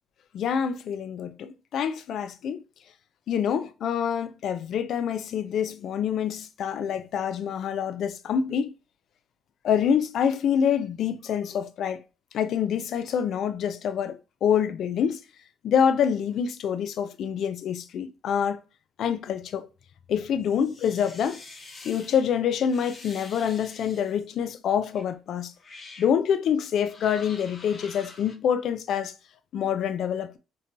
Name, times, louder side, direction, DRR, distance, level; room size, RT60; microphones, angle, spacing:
voice 1, 0.3-2.6 3.3-8.7 9.6-12.0 12.3-15.2 15.6-18.6 19.0-19.7 20.1-21.4 21.8-25.5 26.0-29.1 29.5-30.4, left 8 dB, 70° left, 0.3 m, -26 dB
sound 1, 20.4-22.2 22.7-24.2 24.9-25.1 25.6-26.1 26.8-28.3, left 3 dB, 50° left, 0.7 m, -46 dB
4.1 x 2.2 x 2.6 m
cardioid pair, 90°, 0 cm